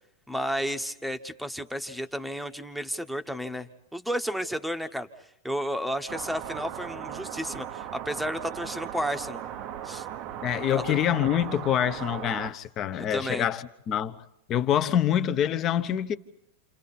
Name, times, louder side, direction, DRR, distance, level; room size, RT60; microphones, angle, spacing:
voice 1, 0.3-5.1 5.4-9.4 9.8-10.1 10.7-11.0 13.1-13.5, equal, ahead, 1.1 m, -32 dB
sound 1, 6.1-12.5, right 10 dB, 35° right, 0.8 m, -37 dB
voice 2, 10.4-16.1, left 10 dB, 30° left, 1.0 m, -26 dB
29.0 x 28.5 x 4.3 m
supercardioid pair, 160°, 0 cm